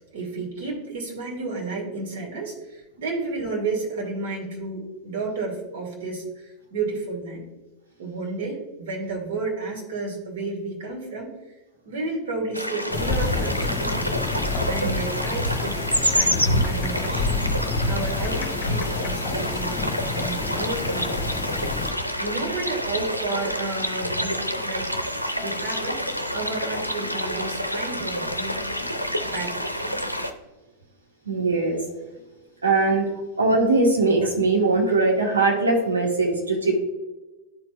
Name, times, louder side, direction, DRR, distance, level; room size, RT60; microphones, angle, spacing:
voice 1, 0.1-7.5 8.0-11.3 11.8-14.2 14.6-17.4 17.8-19.8 20.1-21.6 22.2-24.9 25.4-26.0 26.3-28.7 29.2-29.6 29.9-30.0, right 3 dB, 55° right, -1 dB, 2.0 m, -32 dB
sound 1, 12.5-30.3, equal, 90° left, 0.5 m, -27 dB
sound 2, 12.9-21.9, left 4 dB, 35° left, 0.9 m, -29 dB
voice 2, 31.2-31.8 32.6-33.1 33.4-36.8, right 3 dB, 75° right, 0 dB, 1.6 m, -20 dB
11.5 x 4.4 x 2.4 m, 1.1 s
figure-of-eight pair, 90°, 0 cm